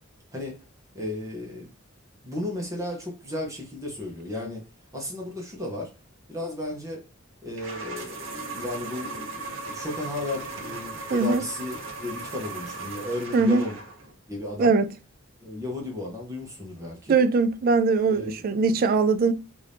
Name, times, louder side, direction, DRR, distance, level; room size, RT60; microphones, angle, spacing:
voice 1, 0.9-1.7 2.2-4.7 4.9-5.9 6.3-7.0 7.4-13.8 14.3-14.8 15.4-17.2 18.1-18.4, left 1 dB, 15° right, 0.9 m, -34 dB
sound 1, 7.6-14.1, right 3 dB, 65° right, 0.9 m, -37 dB
voice 2, 11.1-11.4 13.3-13.6 14.6-14.9 17.1-19.3, right 4 dB, 45° right, 0.3 m, -21 dB
2.8 x 2.6 x 3.3 m
head